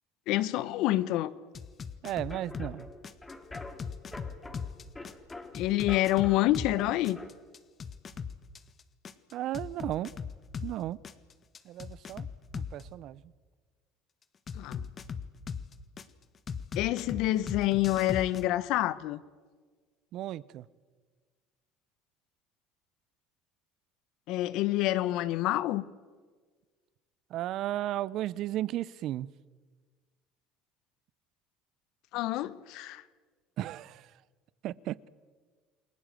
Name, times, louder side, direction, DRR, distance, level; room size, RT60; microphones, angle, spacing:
voice 1, 0.3-1.3 5.5-7.2 14.5-14.9 16.7-19.2 24.3-25.8 32.1-33.0, left 15 dB, 70° left, 1.1 m, -27 dB
sound 1, 1.5-2.7 3.0-6.7 7.0-10.7 11.0-12.8 14.5-16.0 16.5-18.4, left 6 dB, 40° left, 1.6 m, -38 dB
voice 2, 2.0-2.9 9.3-10.1 10.6-11.0 11.7-12.3 12.5-13.2 20.1-20.6 27.3-29.3 33.6-34.0 34.6-35.1, right 13 dB, 60° right, 0.7 m, -34 dB
sound 2, 2.1-7.3, left 2 dB, 20° left, 3.5 m, -46 dB
29.0 x 21.5 x 7.7 m
hypercardioid pair, 75°, 0 cm